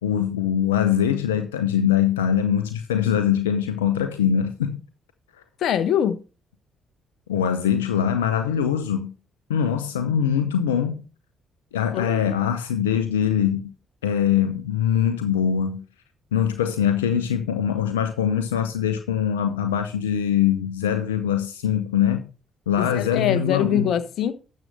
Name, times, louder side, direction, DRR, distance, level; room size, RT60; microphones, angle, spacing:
voice 1, 0.0-4.8 7.3-9.1 9.5-11.0 11.7-13.7 14.0-15.8 16.3-22.3 22.7-24.0, left 9 dB, 85° left, 0.8 m, -23 dB
voice 2, 5.6-6.2 11.9-12.3 22.8-24.3, left 9 dB, 65° left, 1.1 m, -23 dB
12.5 x 7.6 x 3.6 m
hypercardioid pair, 45°, 0 cm